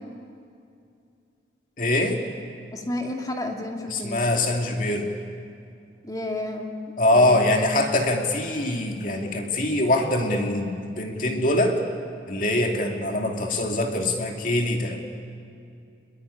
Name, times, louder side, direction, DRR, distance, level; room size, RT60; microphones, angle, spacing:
voice 1, 1.8-2.2 3.9-5.1 7.0-11.8 12.3-15.0, left 1 dB, 45° left, 2 dB, 2.6 m, -23 dB
voice 2, 2.7-4.2 6.0-6.8 7.1-7.5, left 1 dB, 20° left, 2 dB, 2.3 m, -31 dB
26.0 x 22.0 x 9.9 m, 2.5 s
head